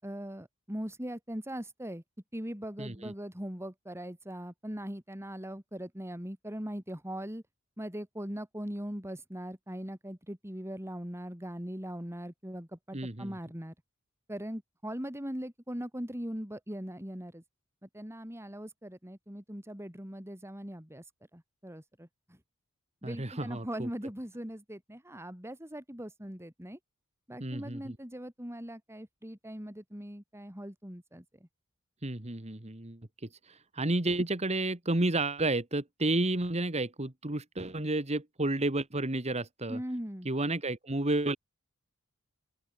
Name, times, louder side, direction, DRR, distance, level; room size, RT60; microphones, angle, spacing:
voice 1, 0.0-2.0 2.3-7.4 7.8-13.7 14.3-17.4 17.8-21.0 21.3-22.4 23.0-26.8 27.3-31.2 39.7-40.3, equal, 10° right, 4.9 m, -40 dB
voice 2, 2.8-3.1 12.9-13.3 23.0-23.9 27.4-28.0 32.0-33.0 33.4-39.8 40.3-41.4, right 2 dB, 30° right, 2.0 m, -31 dB
open air
head